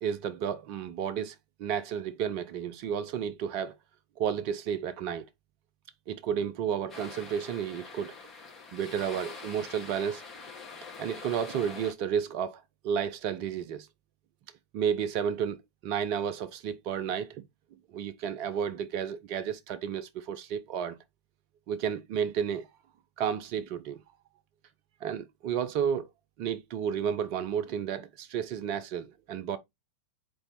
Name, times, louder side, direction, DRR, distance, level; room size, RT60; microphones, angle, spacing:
voice 1, 0.0-1.3 1.6-3.7 4.2-5.3 6.1-8.2 8.7-10.2 11.0-13.9 14.7-17.4 17.9-21.0 21.7-22.7 23.2-24.0 25.0-26.1 26.4-29.6, right 8 dB, 45° right, 0.4 m, -32 dB
sound 1, 6.9-11.9, left 4 dB, 20° left, 2.3 m, -44 dB
4.0 x 3.4 x 3.9 m
figure-of-eight pair, 90°, 0 cm